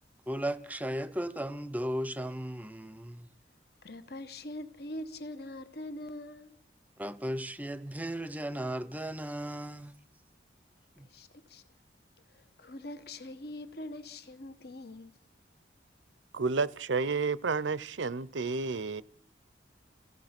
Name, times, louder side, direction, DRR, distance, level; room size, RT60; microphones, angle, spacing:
voice 1, 0.3-3.3 7.0-9.9 11.0-11.1, right 1 dB, 10° right, 0.7 m, -36 dB
voice 2, 3.8-6.6 11.1-11.6 12.3-15.1, left 1 dB, 55° left, 1.4 m, -43 dB
voice 3, 16.3-19.0, right 4 dB, 80° right, 0.7 m, -31 dB
29.0 x 16.0 x 6.0 m
head